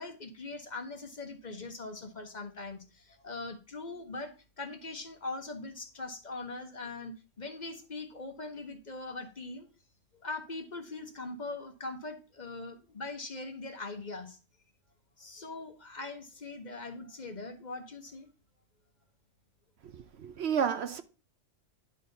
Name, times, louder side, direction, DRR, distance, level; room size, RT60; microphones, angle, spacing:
voice 1, 0.0-9.7 10.2-14.4 15.2-18.3, left 3 dB, 40° left, 1.0 m, -41 dB
voice 2, 19.8-21.0, right 7 dB, 65° right, 0.9 m, -31 dB
10.5 x 4.0 x 4.0 m
omnidirectional pair, 1.3 m